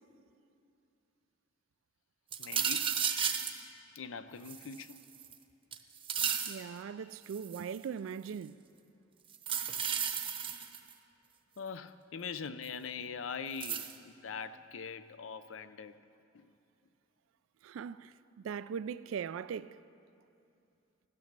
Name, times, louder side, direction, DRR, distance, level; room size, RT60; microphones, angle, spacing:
sound 1, 2.3-3.6 4.5-5.3 5.7-6.6 7.3-7.8 9.3-10.9 12.6-12.7 13.6-13.9, right 8 dB, 25° right, 0.8 m, -33 dB
voice 1, 2.4-3.0 3.9-5.0 11.6-15.9 16.3-16.5, left 6 dB, 80° left, 0.6 m, -42 dB
voice 2, 6.5-8.6 17.6-18.1 18.4-19.8, right 7 dB, 85° right, 0.3 m, -40 dB
15.5 x 12.5 x 6.6 m
head